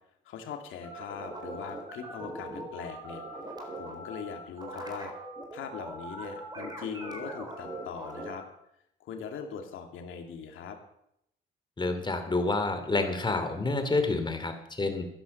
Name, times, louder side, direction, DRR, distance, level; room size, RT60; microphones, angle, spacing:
voice 1, 0.2-5.1 5.5-8.4 9.0-10.8, left 7 dB, 80° left, 4 dB, 2.6 m, -41 dB
sound 1, 0.8-8.4, right 1 dB, 20° right, 4.2 m, -41 dB
voice 2, 11.8-15.1, left 3 dB, 25° left, 7 dB, 2.9 m, -28 dB
14.0 x 11.0 x 7.0 m, 0.77 s
cardioid pair, 90°, 20 cm